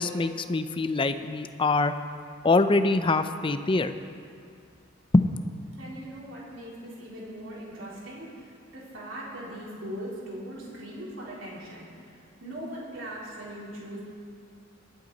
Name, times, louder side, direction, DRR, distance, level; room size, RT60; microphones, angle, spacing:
voice 1, 0.0-1.9 2.4-3.9 5.1-5.3, left 3 dB, 25° left, 10 dB, 0.5 m, -24 dB
voice 2, 5.8-14.0, right 1 dB, 75° right, -6 dB, 3.7 m, -40 dB
23.5 x 8.3 x 4.0 m, 2.3 s
head